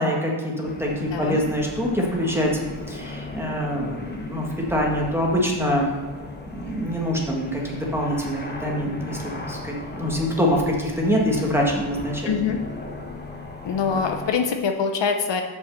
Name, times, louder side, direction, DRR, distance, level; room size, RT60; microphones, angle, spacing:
voice 1, 0.0-2.5 2.9-5.9 6.6-12.4, equal, 5° right, -2 dB, 1.6 m, -25 dB
sound 1, 0.6-14.3, left 3 dB, 20° left, 1.0 m, -36 dB
voice 2, 1.0-1.4 12.2-12.6 13.6-15.4, left 6 dB, 65° left, 5 dB, 0.8 m, -24 dB
6.4 x 5.3 x 6.6 m, 1.4 s
wide cardioid pair, 130°, 47 cm